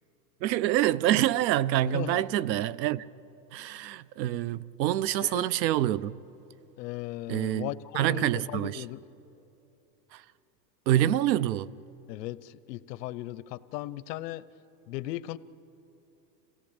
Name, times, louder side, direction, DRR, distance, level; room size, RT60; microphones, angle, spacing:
voice 1, 0.4-3.1 3.5-6.2 7.3-8.8 10.1-10.2 10.9-11.7, right 13 dB, 85° right, 0.8 m, -26 dB
voice 2, 1.9-2.3 5.1-5.5 6.8-9.0 12.1-14.4 14.9-15.4, left 15 dB, 70° left, 0.8 m, -37 dB
27.5 x 17.0 x 8.7 m
supercardioid pair, 145°, 50 cm